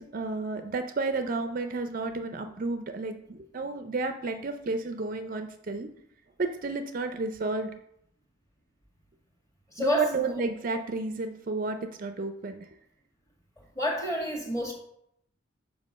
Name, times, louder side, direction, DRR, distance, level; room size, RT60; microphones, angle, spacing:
voice 1, 0.0-5.9 6.4-7.7 9.8-12.7, right 3 dB, 45° right, 7 dB, 0.5 m, -31 dB
voice 2, 9.7-10.4 13.7-14.7, left 1 dB, 15° left, 0 dB, 1.6 m, -29 dB
5.2 x 4.9 x 6.4 m, 0.72 s
head